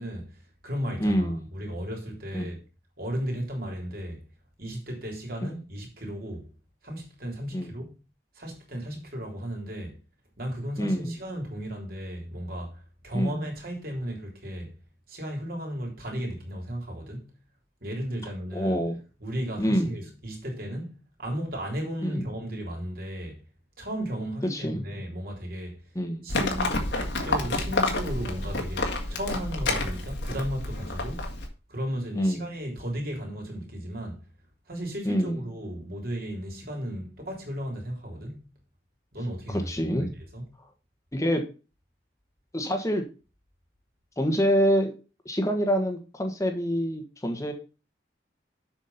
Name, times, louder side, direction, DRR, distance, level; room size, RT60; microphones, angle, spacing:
voice 1, 0.0-2.5 3.0-4.2 4.6-6.5 6.8-7.9 8.4-10.0 10.4-14.7 15.1-17.3 17.8-18.8 19.2-23.4 23.8-25.8 26.2-26.8 27.2-31.3 31.7-34.2 34.7-38.5 39.1-39.7 40.0-40.1 40.3-40.5, equal, 55° right, 3.5 m, -35 dB
voice 2, 1.0-1.5 2.3-2.5 5.4-5.6 7.5-7.7 10.8-11.2 13.1-13.4 18.5-19.0 19.6-20.0 22.0-22.3 24.5-24.8 25.9-26.3 32.1-32.5 35.0-35.4 39.7-40.1 41.1-41.4 42.5-43.0 44.2-44.9 45.2-47.5, equal, 15° left, 1.3 m, -26 dB
Livestock farm animals working animals, 26.3-31.5, left 2 dB, 75° left, 2.0 m, -29 dB
7.8 x 6.1 x 5.7 m
head